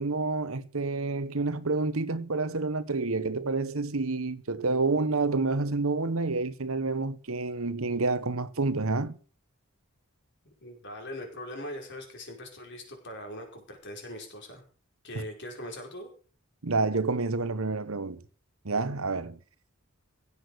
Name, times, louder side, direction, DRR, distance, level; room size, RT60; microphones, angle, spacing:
voice 1, 0.0-9.1 15.1-15.2 16.6-18.2 18.6-19.4, right 3 dB, 70° right, 1.2 m, -28 dB
voice 2, 10.5-14.6 15.0-16.1, left 1 dB, 55° left, 5.1 m, -41 dB
16.0 x 8.9 x 6.3 m
head